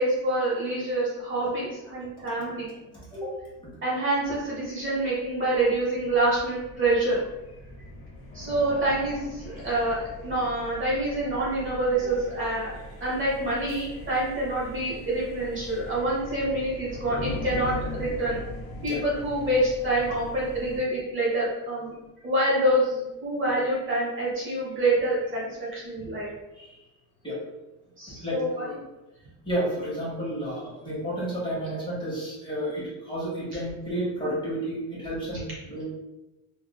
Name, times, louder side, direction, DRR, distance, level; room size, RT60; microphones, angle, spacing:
voice 1, 0.0-2.7 3.8-7.2 8.3-12.7 13.0-18.4 18.8-21.9 22.2-26.3 28.0-28.7, right 1 dB, 35° right, -7 dB, 1.1 m, -26 dB
sound 1, 4.2-20.8, left 1 dB, 45° left, 1.4 m, -40 dB
voice 2, 28.2-28.8 29.4-35.8, right 1 dB, 15° left, -8 dB, 1.5 m, -31 dB
3.6 x 2.4 x 2.3 m, 1.0 s
cardioid pair, 130°, 33 cm